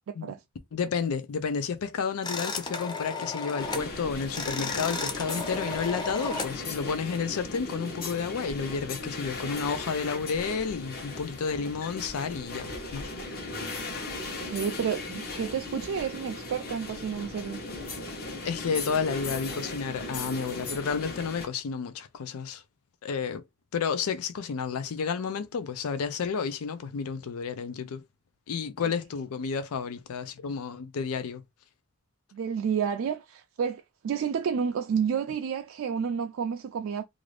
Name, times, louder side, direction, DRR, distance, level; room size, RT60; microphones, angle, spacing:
voice 1, 0.1-0.4 14.2-17.6 32.3-37.0, right 7 dB, 65° right, 0.3 m, -30 dB
voice 2, 0.7-13.1 18.2-22.6 23.0-23.4 23.7-28.0 28.5-31.4, left 6 dB, 85° left, 0.4 m, -31 dB
sound 1, 2.2-3.9 4.2-6.6, left 3 dB, 20° left, 0.4 m, -34 dB
sound 2, 3.6-21.5, left 2 dB, 45° left, 0.8 m, -37 dB
2.5 x 2.4 x 3.2 m
head